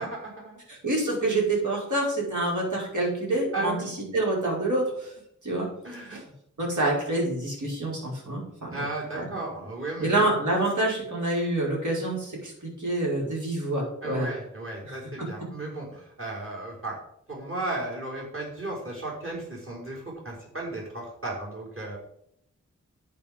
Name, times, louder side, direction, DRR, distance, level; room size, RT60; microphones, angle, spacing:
voice 1, 0.0-0.6 3.5-3.9 5.8-6.2 6.7-6.8 8.7-10.3 14.0-17.0 17.3-22.0, right 2 dB, 40° right, -4 dB, 5.4 m, -35 dB
voice 2, 0.7-5.1 5.4-5.7 6.1-6.2 6.6-8.8 9.1-9.3 10.0-14.3 14.8-15.3, right 2 dB, 70° right, -3 dB, 5.5 m, -27 dB
10.5 x 8.4 x 5.4 m, 0.71 s
wide cardioid pair, 60°, 31 cm